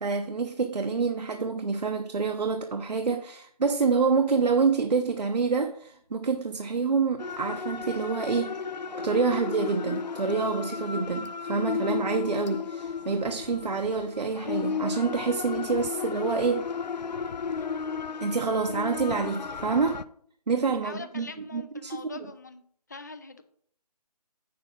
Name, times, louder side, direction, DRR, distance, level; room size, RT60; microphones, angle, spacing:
voice 1, 0.0-8.6 9.0-16.7 18.2-20.0 20.5-22.0, right 4 dB, 75° right, 0.8 m, -27 dB
sound 1, 7.2-20.0, left 5 dB, 90° left, 0.5 m, -34 dB
voice 2, 20.8-22.6 22.9-23.4, left 4 dB, 25° left, 0.4 m, -43 dB
7.8 x 6.9 x 3.7 m
figure-of-eight pair, 165°, 21 cm